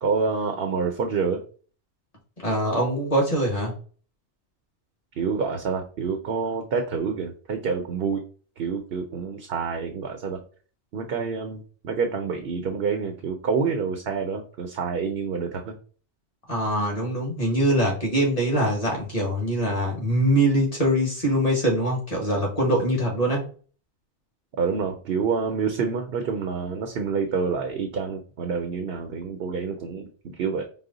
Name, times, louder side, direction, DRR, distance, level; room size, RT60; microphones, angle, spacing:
voice 1, 0.0-1.4 5.2-8.2 8.6-10.4 10.9-15.8 24.6-30.1 30.4-30.6, right 5 dB, 60° right, 4 dB, 0.8 m, -27 dB
voice 2, 2.4-3.7 16.5-23.4, right 1 dB, 30° left, -2 dB, 1.6 m, -23 dB
4.9 x 2.1 x 3.8 m, 0.40 s
omnidirectional pair, 1.2 m